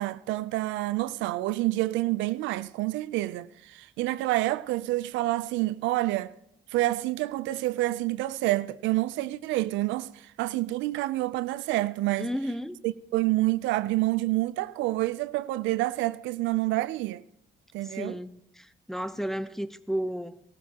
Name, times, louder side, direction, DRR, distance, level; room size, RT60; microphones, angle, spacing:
voice 1, 0.0-6.3 6.7-12.3 12.8-17.2 17.7-18.2, right 17 dB, 90° right, 0.4 m, -28 dB
voice 2, 12.2-12.8 17.8-20.4, equal, ahead, 0.6 m, -33 dB
18.0 x 14.0 x 2.9 m
cardioid pair, 75°, 19 cm